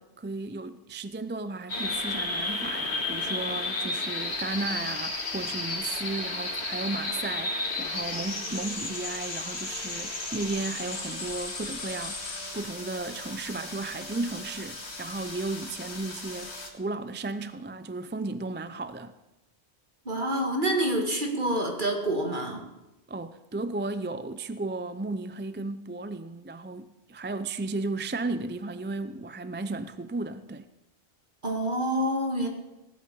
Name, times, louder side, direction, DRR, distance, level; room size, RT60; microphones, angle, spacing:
voice 1, 0.0-19.1 23.1-30.7, right 3 dB, 15° right, 0.3 m, -34 dB
sound 1, 1.7-16.7, left 2 dB, 90° left, 2.3 m, -34 dB
voice 2, 20.1-22.7 31.4-32.5, right 1 dB, 50° right, 2.3 m, -27 dB
18.5 x 8.5 x 7.0 m
omnidirectional pair, 1.1 m